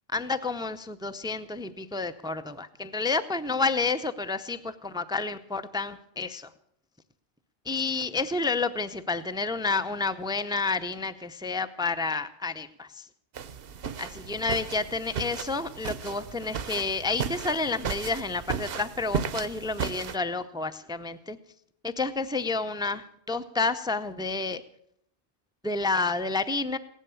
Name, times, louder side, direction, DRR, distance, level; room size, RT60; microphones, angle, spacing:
voice 1, 0.1-6.5 7.7-13.1 14.0-21.4 21.8-24.6 25.6-26.8, left 3 dB, 5° right, 12 dB, 0.5 m, -30 dB
sound 1, 13.3-20.2, right 7 dB, 70° right, 0.9 m, -35 dB
16.5 x 11.0 x 7.0 m, 0.71 s
omnidirectional pair, 1.0 m